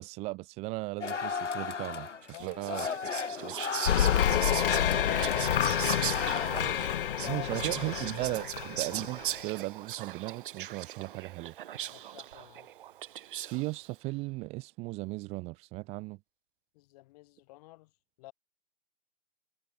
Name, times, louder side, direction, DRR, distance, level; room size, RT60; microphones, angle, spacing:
voice 1, 0.0-2.1 2.4-2.9 3.4-3.5 7.2-11.5 13.4-16.2, right 23 dB, 15° right, 1.1 m, -36 dB
sound 1, 1.0-6.6, left 5 dB, 80° left, 6.6 m, -35 dB
voice 2, 2.3-2.7 5.0-5.9 7.0-8.1 11.9-12.7 16.7-17.9 18.2-18.3, left 20 dB, 35° left, 6.3 m, -47 dB
Whispering, 2.3-13.7, right 12 dB, 45° right, 4.6 m, -39 dB
sound 2, 3.9-9.3, left 10 dB, 50° left, 0.5 m, -28 dB
hypercardioid pair, 145°, 36 cm